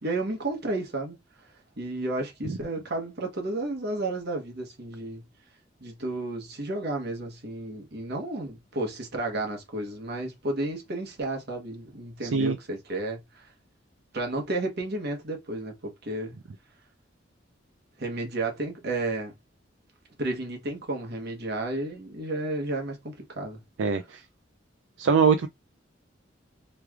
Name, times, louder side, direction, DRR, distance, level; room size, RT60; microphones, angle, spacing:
voice 1, 0.0-1.2 1.8-5.2 5.8-13.5 14.1-16.3 18.0-19.3 20.2-23.6, right 2 dB, 60° right, 1.1 m, -32 dB
voice 2, 23.8-24.2 25.0-25.5, right 5 dB, 75° right, 0.4 m, -22 dB
3.2 x 3.1 x 2.3 m
head